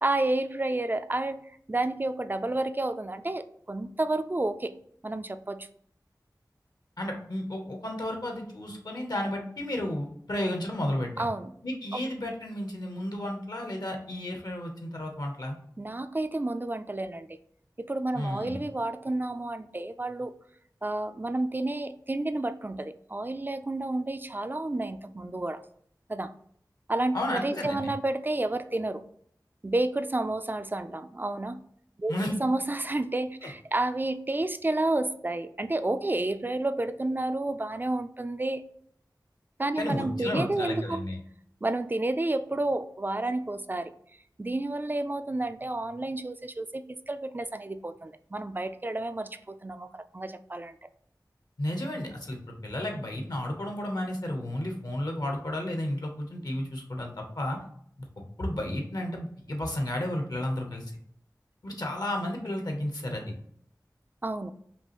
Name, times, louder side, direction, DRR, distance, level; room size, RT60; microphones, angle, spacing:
voice 1, 0.0-4.8 5.0-5.7 11.2-11.5 11.9-12.0 15.8-17.4 17.8-20.3 20.8-25.6 26.1-26.3 26.9-29.0 29.6-31.6 32.0-32.1 32.4-38.6 39.6-41.0 41.6-43.9 44.4-50.8 64.2-64.5, right 2 dB, 25° right, 11 dB, 0.3 m, -30 dB
voice 2, 7.0-11.3 11.6-15.6 18.1-18.6 27.1-27.9 32.1-32.3 33.4-33.5 39.8-41.2 51.6-52.4 52.6-57.6 58.2-60.8 61.6-63.3, left 1 dB, 65° left, 2 dB, 0.9 m, -32 dB
5.5 x 2.5 x 2.9 m, 0.65 s
wide cardioid pair, 60°, 7 cm